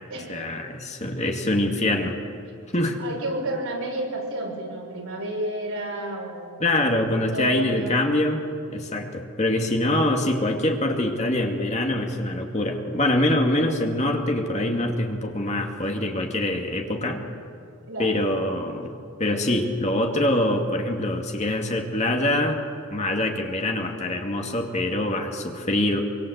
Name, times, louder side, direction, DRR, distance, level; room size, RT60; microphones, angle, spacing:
voice 1, 0.3-2.1 2.7-3.0 6.6-8.4 8.7-17.2 18.0-18.9 19.2-22.6 22.9-26.0, left 1 dB, 30° left, 2 dB, 2.3 m, -24 dB
voice 2, 3.0-6.7 7.2-8.0 17.9-18.3, right 1 dB, 70° right, -1 dB, 6.7 m, -31 dB
25.0 x 25.0 x 8.1 m, 2.4 s
head